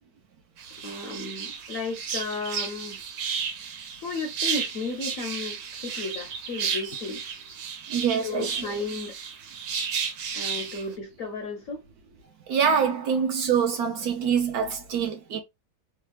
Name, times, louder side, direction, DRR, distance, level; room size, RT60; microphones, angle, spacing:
sound 1, 0.6-10.8, right 6 dB, 90° right, 1.5 m, -33 dB
voice 1, 0.8-3.0 4.0-7.2 8.2-9.2 10.3-11.8 13.1-13.2, left 3 dB, 65° left, 0.8 m, -34 dB
voice 2, 7.9-8.5 12.5-15.4, right 7 dB, 70° right, 1.0 m, -25 dB
3.2 x 2.3 x 3.1 m
omnidirectional pair, 2.0 m